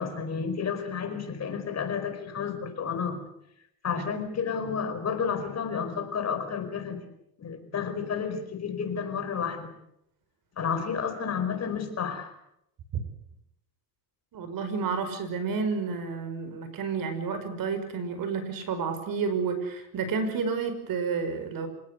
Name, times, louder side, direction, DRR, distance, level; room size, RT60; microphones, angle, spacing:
voice 1, 0.0-3.2 3.8-7.1 7.4-9.7 10.6-12.3, left 6 dB, 35° left, 7 dB, 5.0 m, -31 dB
voice 2, 14.3-21.7, right 5 dB, 45° right, 10 dB, 5.6 m, -30 dB
27.5 x 18.5 x 8.4 m, 0.79 s
supercardioid pair, 115°, 47 cm